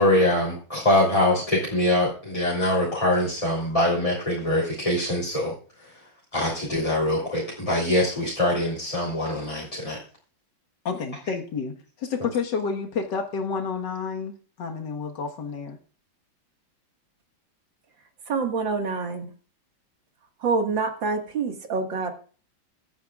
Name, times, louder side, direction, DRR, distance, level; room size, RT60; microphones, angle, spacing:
voice 1, 0.0-5.5 6.3-10.0, left 1 dB, 15° left, -6 dB, 3.3 m, -23 dB
voice 2, 10.9-15.8, left 5 dB, 60° left, 3 dB, 2.1 m, -30 dB
voice 3, 18.3-19.3 20.4-22.1, right 4 dB, 65° right, 4 dB, 2.5 m, -26 dB
23.5 x 9.4 x 2.4 m, 0.40 s
omnidirectional pair, 2.2 m